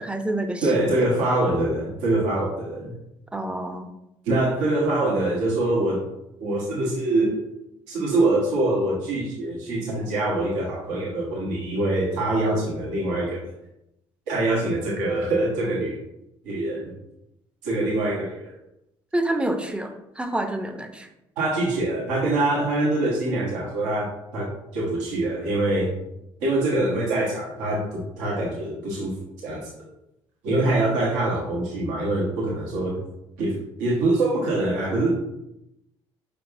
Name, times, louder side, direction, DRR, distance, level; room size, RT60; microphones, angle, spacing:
voice 1, 0.0-1.0 3.3-3.9 19.1-21.1, right 1 dB, 10° right, 7 dB, 0.6 m, -28 dB
voice 2, 0.6-2.9 4.2-6.1 6.4-7.4 7.9-13.4 14.3-16.0 16.4-16.9 17.6-18.5 21.4-25.9 26.4-29.7 30.4-33.0 33.4-35.1, right 2 dB, 80° right, -4 dB, 1.1 m, -24 dB
5.0 x 3.4 x 2.5 m, 0.86 s
hypercardioid pair, 60°, 13 cm